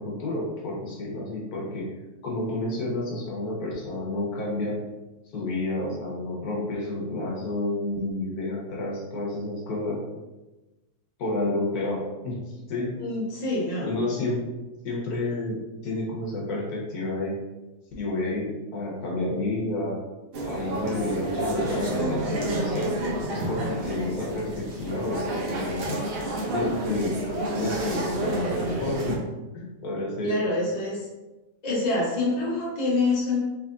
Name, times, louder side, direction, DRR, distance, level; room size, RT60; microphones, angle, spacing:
voice 1, 0.0-1.9 2.2-4.8 5.3-10.0 11.2-12.9 13.8-14.4 14.8-15.6 15.8-17.3 18.0-20.0 20.4-22.9 23.3-26.0 26.5-27.2 27.5-29.2 29.5-30.4, left 2 dB, 80° left, -4 dB, 1.4 m, -30 dB
voice 2, 13.0-13.9 30.2-31.1 31.6-33.4, left 2 dB, 30° left, -5 dB, 0.9 m, -26 dB
sound 1, 20.3-29.1, right 1 dB, 55° right, 0.7 m, -29 dB
3.4 x 3.3 x 2.5 m, 1.1 s
omnidirectional pair, 1.6 m